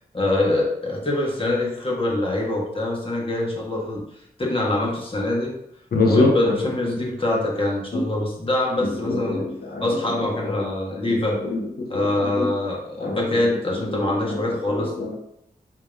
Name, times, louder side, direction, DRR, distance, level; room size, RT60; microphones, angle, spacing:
voice 1, 0.1-4.1 4.4-5.5 6.0-9.4 9.8-11.4 11.9-14.9, left 2 dB, 35° left, -3 dB, 1.1 m, -24 dB
voice 2, 5.9-6.7 7.9-8.0 8.8-10.0 10.4-10.6 11.0-11.1 11.4-12.5 13.0-13.6 13.9-15.2, left 2 dB, 70° left, 1 dB, 0.8 m, -25 dB
3.6 x 2.8 x 3.3 m, 0.79 s
wide cardioid pair, 65°, 16 cm